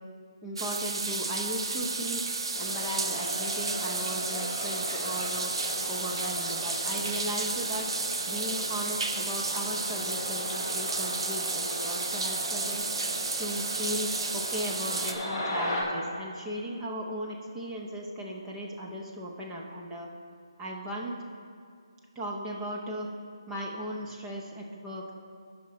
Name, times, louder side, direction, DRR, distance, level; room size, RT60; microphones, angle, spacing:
voice 1, 0.4-2.2 2.6-5.5 5.9-7.9 8.3-12.9 13.4-20.1 20.6-21.2 22.2-23.1 23.5-25.1, equal, 10° right, -2 dB, 0.7 m, -37 dB
sound 1, 0.6-15.1, right 3 dB, 65° right, 0.9 m, -32 dB
sound 2, 2.5-15.8, left 1 dB, 25° left, 2.5 m, -38 dB
14.5 x 5.7 x 4.2 m, 2.2 s
hypercardioid pair, 165°, 3 cm